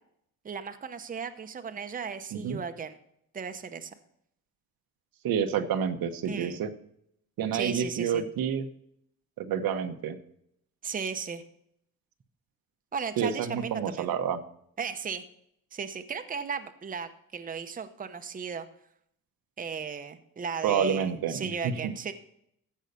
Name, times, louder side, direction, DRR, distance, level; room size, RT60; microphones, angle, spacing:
voice 1, 0.4-3.0 3.3-3.9 6.2-6.6 7.5-8.2 10.8-11.4 12.9-14.1 14.8-15.2 15.7-18.7 19.6-22.1, right 6 dB, 25° right, 8 dB, 0.8 m, -36 dB
voice 2, 5.2-6.7 7.4-8.7 9.4-10.2 13.2-14.4 20.6-21.9, right 7 dB, 85° right, 8 dB, 1.1 m, -29 dB
15.0 x 5.5 x 6.8 m, 0.72 s
cardioid pair, 140°, 34 cm